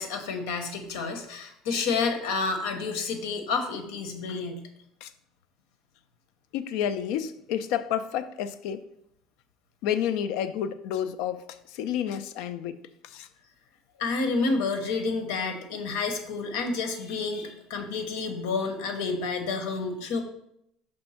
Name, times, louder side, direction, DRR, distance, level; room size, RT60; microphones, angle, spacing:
voice 1, 0.0-4.6 14.0-20.2, left 4 dB, 90° left, 1.0 m, -29 dB
voice 2, 6.5-8.8 9.8-11.4 11.7-12.8 13.0-13.3, left 9 dB, 75° left, 0.4 m, -30 dB
5.3 x 3.4 x 5.7 m
cardioid pair, 140°, 0 cm